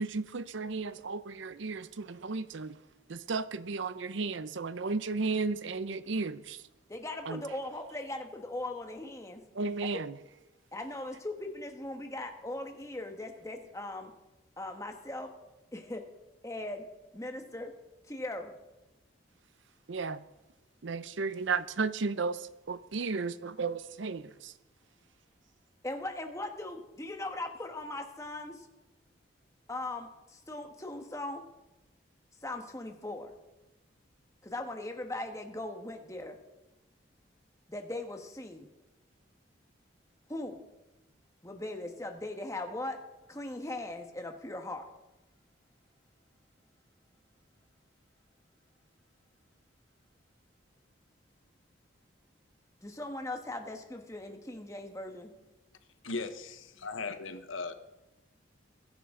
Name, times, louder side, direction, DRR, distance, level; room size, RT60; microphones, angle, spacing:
voice 1, 0.0-2.7 3.1-6.6 7.3-7.4 9.5-10.1 19.9-20.2 20.8-24.5, right 4 dB, 70° right, 0.6 m, -34 dB
voice 2, 6.9-9.4 9.8-10.0 10.7-14.1 14.6-15.3 15.7-16.0 16.4-16.9 17.1-17.7 18.0-18.6 25.8-28.7 29.7-31.5 32.4-33.3 34.4-36.4 37.7-38.7 40.3-40.6 41.4-43.0 43.3-44.9 52.8-55.3, left 2 dB, 15° left, 1.4 m, -39 dB
voice 3, 56.0-57.7, left 3 dB, 85° left, 1.2 m, -38 dB
22.0 x 11.0 x 3.8 m
head